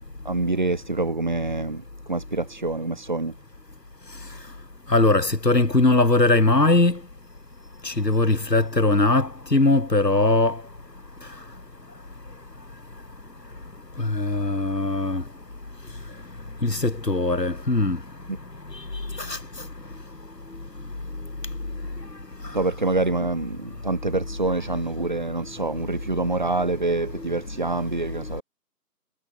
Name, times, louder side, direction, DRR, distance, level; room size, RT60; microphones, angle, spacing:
voice 1, 0.2-3.3 18.3-18.4 22.5-28.4, right 3 dB, 30° right, 5.9 m, -26 dB
voice 2, 4.9-7.0 7.8-10.6 14.0-15.2 16.6-18.0 19.2-19.4 27.2-27.4, left 2 dB, 85° left, 5.3 m, -20 dB
figure-of-eight pair, 180°, 48 cm